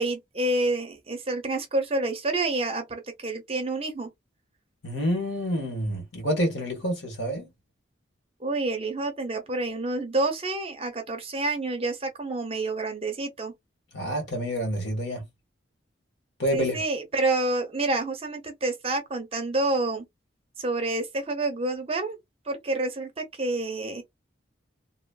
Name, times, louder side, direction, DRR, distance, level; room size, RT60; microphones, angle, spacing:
voice 1, 0.0-4.1 8.4-13.5 16.5-20.0 20.6-22.2 22.5-24.0, right 2 dB, 30° right, 0.6 m, -28 dB
voice 2, 4.8-7.5 13.9-15.2 16.4-16.8, equal, 65° left, 1.4 m, -28 dB
3.0 x 2.0 x 2.2 m
head